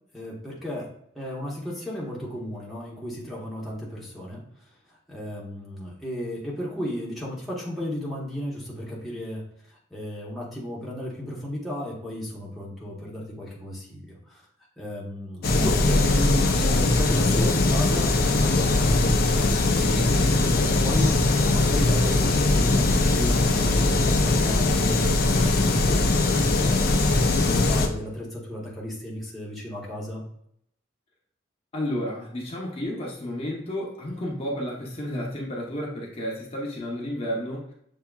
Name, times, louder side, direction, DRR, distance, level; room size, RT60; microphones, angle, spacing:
voice 1, 0.1-0.9 1.1-4.4 5.1-9.4 9.9-14.4 14.8-30.2, left 1 dB, ahead, -6 dB, 0.9 m, -34 dB
sound 1, 15.4-27.9, left 2 dB, 50° left, 0.5 m, -21 dB
voice 2, 31.7-37.7, equal, 30° left, -3 dB, 0.8 m, -31 dB
6.7 x 2.8 x 2.3 m, 0.70 s
head